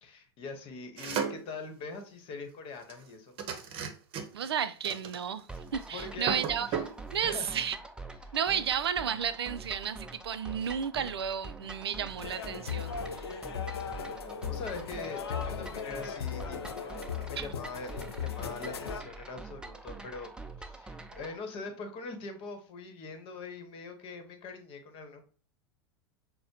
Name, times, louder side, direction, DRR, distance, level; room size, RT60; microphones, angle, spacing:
voice 1, 0.0-3.4 5.9-6.8 7.2-7.6 8.2-8.4 13.3-13.6 13.8-20.3 20.6-25.2, left 4 dB, 45° left, 1.1 m, -43 dB
sound 1, 1.0-1.5 2.9-3.0 3.4-4.5 4.8-5.6 5.8-5.9 6.2-7.0, right 7 dB, 45° right, 0.8 m, -34 dB
voice 2, 4.3-5.5 5.7-6.7 7.1-7.8 8.3-13.2 17.4-17.5, right 8 dB, 90° right, 0.4 m, -32 dB
sound 2, 5.5-21.4, right 3 dB, 5° right, 0.4 m, -45 dB
sound 3, 12.2-19.0, left 7 dB, 90° left, 0.5 m, -37 dB
6.3 x 2.1 x 2.8 m
hypercardioid pair, 100°, 13 cm